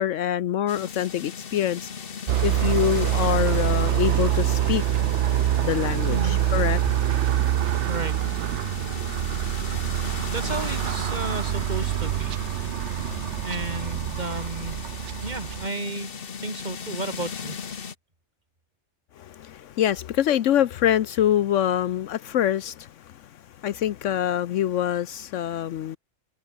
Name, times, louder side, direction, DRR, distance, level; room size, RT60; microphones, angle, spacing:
voice 1, 0.0-1.9 2.4-4.8 5.6-6.8 19.2-26.0, left 11 dB, 75° left, 1.0 m, -25 dB
sound 1, 0.7-17.9, left 6 dB, 50° left, 1.3 m, -37 dB
sound 2, 2.3-15.7, right 12 dB, 70° right, 0.9 m, -25 dB
voice 2, 7.9-8.2 10.3-12.4 13.4-14.8 15.2-16.1 16.4-17.6, right 2 dB, 35° right, 3.6 m, -33 dB
omnidirectional pair, 1.3 m